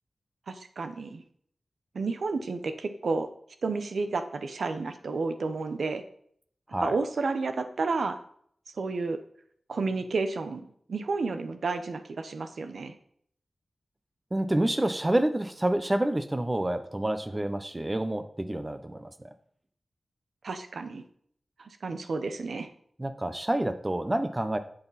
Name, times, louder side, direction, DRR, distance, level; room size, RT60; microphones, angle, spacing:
voice 1, 0.5-1.2 1.9-3.3 3.6-6.0 6.8-8.2 8.8-9.2 9.7-12.9 20.4-21.0 21.6-22.7, right 3 dB, 80° right, 9 dB, 1.0 m, -31 dB
voice 2, 14.3-19.1 23.0-24.6, right 1 dB, 20° right, 9 dB, 0.9 m, -28 dB
11.0 x 8.0 x 4.2 m, 0.63 s
wide cardioid pair, 120°, 0 cm